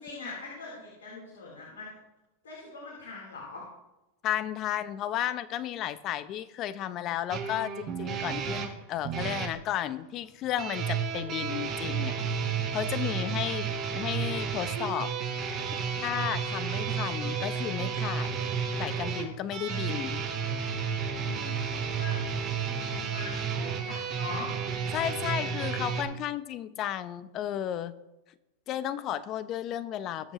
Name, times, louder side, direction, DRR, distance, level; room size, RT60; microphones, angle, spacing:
voice 1, 0.0-2.0 2.4-3.6 13.1-13.7 21.0-24.5, left 3 dB, 80° left, -4 dB, 4.0 m, -43 dB
voice 2, 4.2-12.1 12.7-13.7 13.9-15.1 16.0-18.4 18.8-20.2 24.9-28.0 28.7-30.3, left 11 dB, 40° left, 13 dB, 0.9 m, -33 dB
sound 1, 7.3-9.5 10.6-26.0, right 6 dB, 40° right, 4.3 m, -32 dB
21.0 x 7.3 x 3.2 m, 0.97 s
hypercardioid pair, 105°, 0 cm